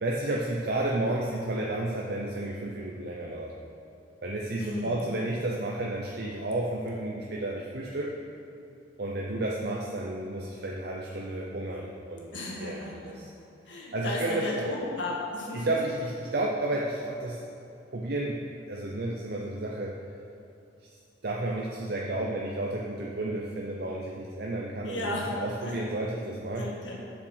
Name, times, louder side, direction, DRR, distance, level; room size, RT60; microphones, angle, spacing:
voice 1, 0.0-3.5 4.2-8.1 9.0-12.3 12.6-13.3 13.9-14.7 15.5-17.4 17.9-18.4 18.7-19.9 20.8-20.9 21.2-26.7, right 2 dB, 55° right, -2 dB, 0.7 m, -32 dB
voice 2, 4.6-5.0 12.3-13.1 13.6-15.7 24.8-25.3 25.6-25.7 26.6-27.0, left 1 dB, 80° left, -3 dB, 1.7 m, -34 dB
7.3 x 7.1 x 6.3 m, 2.8 s
head